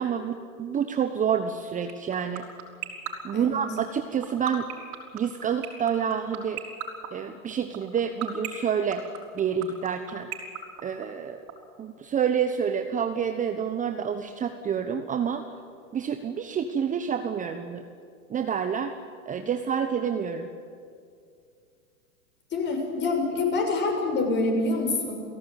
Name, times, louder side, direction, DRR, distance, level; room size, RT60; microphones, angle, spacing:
voice 1, 0.0-2.4 3.2-4.7 5.1-6.6 7.1-9.0 9.3-10.3 10.8-11.4 11.8-15.4 15.9-17.8 18.3-18.9 19.3-20.5, right 7 dB, 20° right, 7 dB, 1.1 m, -28 dB
sound 1, 1.9-11.5, right 17 dB, 40° right, 5.4 m, -33 dB
voice 2, 22.5-25.2, left 3 dB, 25° left, 3 dB, 6.4 m, -26 dB
29.5 x 17.0 x 9.5 m, 2.3 s
hypercardioid pair, 115°, 41 cm